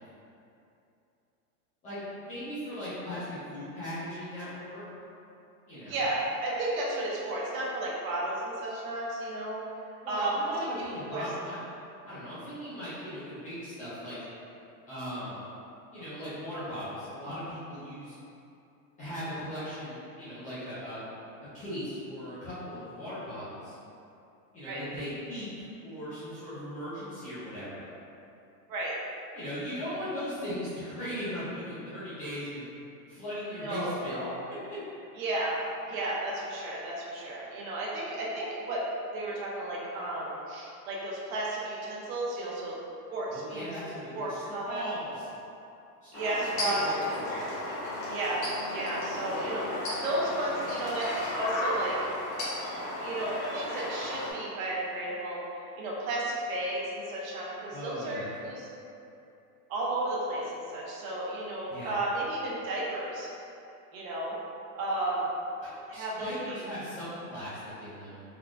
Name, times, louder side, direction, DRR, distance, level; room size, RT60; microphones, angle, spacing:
voice 1, 1.8-4.8 5.7-6.0 10.0-11.6 12.0-14.2 14.9-15.4 15.9-18.2 19.0-21.0 21.5-23.8 24.5-27.8 29.3-32.6 33.1-34.2 43.3-45.3 46.0-47.3 57.7-58.3 61.7-61.9 65.6-68.2, equal, 15° left, -13 dB, 0.5 m, -38 dB
voice 2, 5.9-9.6 10.1-11.2 24.6-24.8 28.7-28.9 33.6-34.3 35.2-35.6 35.9-38.8 39.1-42.8 43.1-43.7 44.1-44.9 46.1-47.2 48.1-48.4 48.7-52.0 53.0-55.4 55.8-58.7 59.7-63.3 63.9-64.3 64.7-65.3 65.9-66.6, right 1 dB, 55° right, -5 dB, 0.8 m, -33 dB
sound 1, 46.1-54.3, left 1 dB, 40° left, 1.1 m, -34 dB
3.6 x 2.2 x 2.4 m, 2.7 s
supercardioid pair, 140°, 49 cm